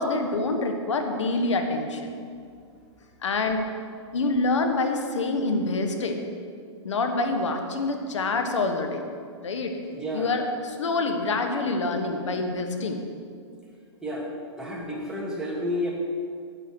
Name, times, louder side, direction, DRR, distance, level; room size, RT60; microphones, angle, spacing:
voice 1, 0.0-2.1 3.2-3.6 4.1-6.2 6.8-9.0 9.4-9.7 10.1-13.0, left 3 dB, 80° left, 5 dB, 1.2 m, -26 dB
voice 2, 9.9-10.3 14.0-15.9, left 1 dB, 5° right, -4 dB, 2.0 m, -31 dB
9.0 x 8.2 x 4.6 m, 2.3 s
hypercardioid pair, 130°, 15 cm